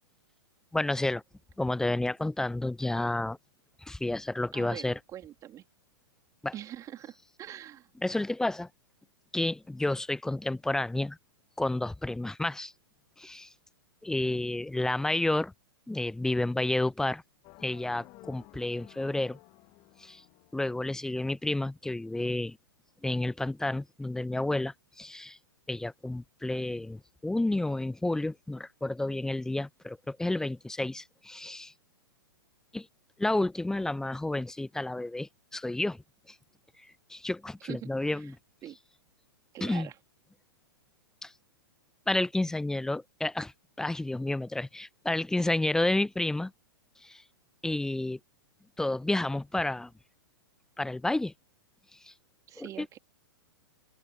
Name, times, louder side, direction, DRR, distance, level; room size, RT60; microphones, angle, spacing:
voice 1, 0.7-1.2 1.6-3.4 3.9-5.0 6.4-6.5 8.0-8.7 9.3-11.2 11.6-12.7 13.2-13.5 14.0-15.5 15.9-17.2 17.6-19.4 20.0-20.2 20.5-22.6 23.0-25.4 25.7-31.7 32.7-32.9 33.2-36.0 37.1-38.3 39.6-39.9 41.2-41.3 42.1-43.5 43.8-46.5 47.0-47.2 47.6-48.2 48.8-49.9 50.8-51.3 52.0-52.1 52.6-52.9, left 2 dB, 5° left, 0.9 m, -30 dB
voice 2, 4.5-5.6 6.5-7.9 37.6-38.3 38.6-38.8 39.5-40.0 52.5-53.0, right 12 dB, 25° right, 3.6 m, -43 dB
sound 1, 17.4-21.5, left 23 dB, 35° left, 3.3 m, -55 dB
open air
figure-of-eight pair, 105°, 13 cm